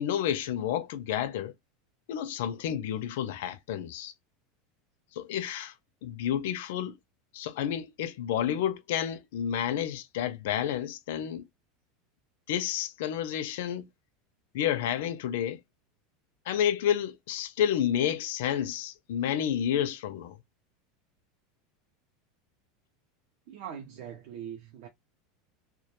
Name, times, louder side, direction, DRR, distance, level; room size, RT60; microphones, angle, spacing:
voice 1, 0.0-1.5 2.1-4.1 5.2-5.7 6.0-7.0 7.3-11.4 12.5-13.9 14.5-15.6 16.5-20.4, left 10 dB, 65° left, 0.4 m, -30 dB
voice 2, 23.5-24.9, right 9 dB, 50° right, 0.4 m, -41 dB
2.2 x 2.1 x 2.9 m
supercardioid pair, 180°, 0 cm